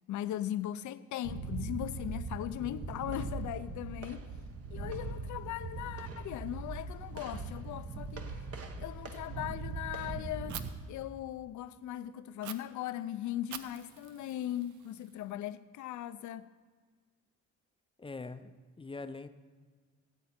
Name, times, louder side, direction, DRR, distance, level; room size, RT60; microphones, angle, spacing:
voice 1, 0.1-4.3 4.7-8.3 8.8-10.6 10.9-16.5, left 12 dB, 75° left, 0.6 m, -39 dB
sound 1, 1.2-10.7, right 3 dB, 50° right, 1.2 m, -40 dB
voice 2, 2.5-3.2 3.6-3.8 18.0-19.3, left 3 dB, 20° left, 0.6 m, -45 dB
Fire, 10.5-10.6 12.4-12.5 13.5-15.5, right 9 dB, 75° right, 0.8 m, -46 dB
17.0 x 8.3 x 4.4 m
cardioid pair, 90°, 30 cm